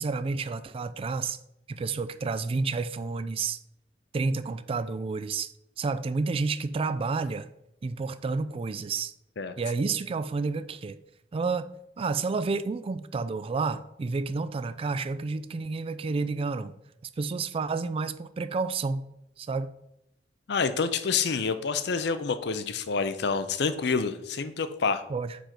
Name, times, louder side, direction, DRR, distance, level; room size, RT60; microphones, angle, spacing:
voice 1, 0.0-1.4 1.7-3.6 4.1-7.5 7.8-9.1 9.6-11.0 11.3-11.7 12.0-16.7 17.2-19.1 19.4-19.7 25.1-25.4, right 4 dB, 30° right, 14 dB, 0.3 m, -30 dB
voice 2, 20.5-25.0, left 5 dB, 65° left, 11 dB, 0.6 m, -28 dB
5.0 x 5.0 x 5.9 m, 0.80 s
head